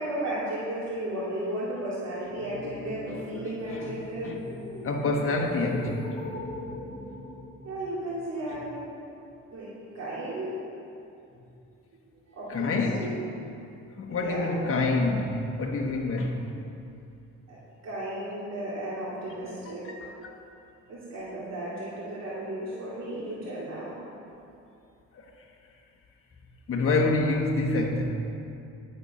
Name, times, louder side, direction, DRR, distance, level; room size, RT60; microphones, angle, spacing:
voice 1, 0.0-4.3 7.6-8.9 9.5-10.5 12.1-13.1 14.1-14.6 17.5-17.6 17.8-19.9 20.9-23.9, right 1 dB, 60° right, -8 dB, 3.1 m, -34 dB
sound 1, 2.2-8.2, left 1 dB, 20° left, 2.8 m, -40 dB
voice 2, 3.0-3.8 4.2-4.4 4.8-6.3 8.5-8.6 12.5-13.3 14.0-16.4 19.6-20.4 25.1-25.2 26.7-28.1, left 3 dB, 45° left, 0 dB, 1.3 m, -28 dB
11.5 x 7.9 x 5.6 m, 2.7 s
cardioid pair, 90°, 30 cm